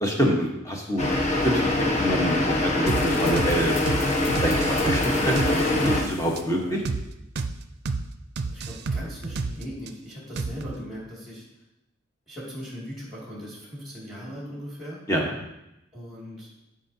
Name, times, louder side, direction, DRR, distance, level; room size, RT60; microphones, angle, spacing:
voice 1, 0.0-1.1 1.4-3.7 4.4-6.8 15.1-15.3, equal, 15° left, 0 dB, 1.1 m, -26 dB
sound 1, 1.0-6.0, left 2 dB, 35° left, 1.2 m, -24 dB
sound 2, 2.9-7.0, left 3 dB, 75° left, 0.7 m, -37 dB
sound 3, 2.9-3.0 3.4-3.5 3.9-4.0 4.3-6.0 6.4-6.5 6.8-7.0 7.3-7.5 7.8-8.0 8.4-9.9 10.4-10.8, right 4 dB, 55° right, 0.5 m, -29 dB
voice 2, 8.5-11.4 12.3-15.0 15.9-16.5, equal, ahead, -6 dB, 2.3 m, -39 dB
11.5 x 5.1 x 2.8 m, 0.91 s
head